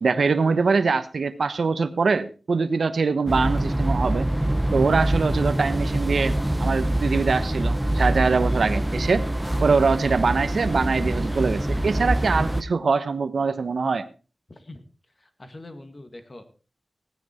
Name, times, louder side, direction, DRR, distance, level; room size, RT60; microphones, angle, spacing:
voice 1, 0.0-4.3 4.7-9.3 9.6-14.1, right 4 dB, 65° right, 11 dB, 1.0 m, -23 dB
sound 1, 3.3-12.6, right 1 dB, 5° right, 1.0 m, -24 dB
voice 2, 14.5-14.8 15.2-16.5, left 2 dB, 35° left, 8 dB, 1.8 m, -43 dB
16.5 x 9.4 x 4.4 m, 0.36 s
wide cardioid pair, 110°, 0 cm